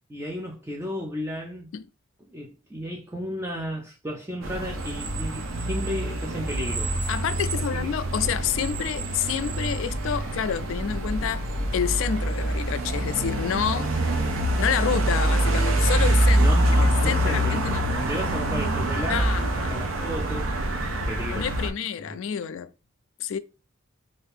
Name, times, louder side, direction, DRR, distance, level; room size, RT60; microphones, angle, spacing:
voice 1, 0.1-1.7 2.3-6.9 7.6-7.9 16.4-20.5 21.1-21.5 22.1-22.2, equal, 10° right, 0.4 m, -34 dB
sound 1, 4.4-21.7, right 1 dB, 75° right, 0.6 m, -25 dB
voice 2, 7.1-11.5 11.7-13.9 14.6-16.5 16.8-17.9 19.1-19.9 21.3-22.7 23.2-23.4, left 8 dB, 70° left, 0.3 m, -28 dB
2.7 x 2.5 x 3.3 m
head